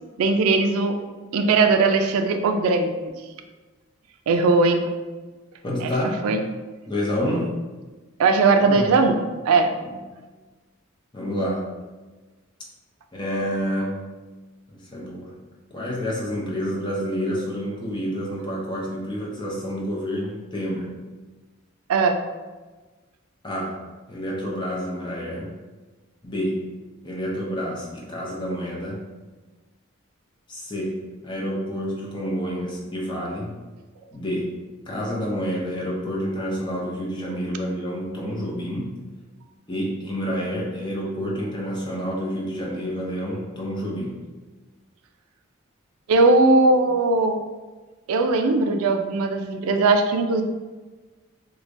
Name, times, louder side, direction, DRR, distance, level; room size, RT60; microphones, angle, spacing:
voice 1, 0.2-0.9 1.3-2.9 4.3-4.9 5.8-5.9 6.2-6.4 8.2-9.2 9.5-9.7 21.9-22.2 46.1-47.4 48.1-50.4, right 3 dB, 90° right, 6 dB, 0.4 m, -19 dB
voice 2, 5.6-6.2 6.8-7.5 8.6-8.9 9.8-10.0 11.1-11.7 13.1-14.0 14.7-15.4 15.7-21.0 23.4-23.8 24.1-25.6 26.2-26.7 27.0-29.1 30.5-33.5 34.1-34.6 34.8-38.9 39.7-44.2, equal, 20° left, -4 dB, 0.6 m, -28 dB
4.6 x 2.2 x 2.5 m, 1.3 s
head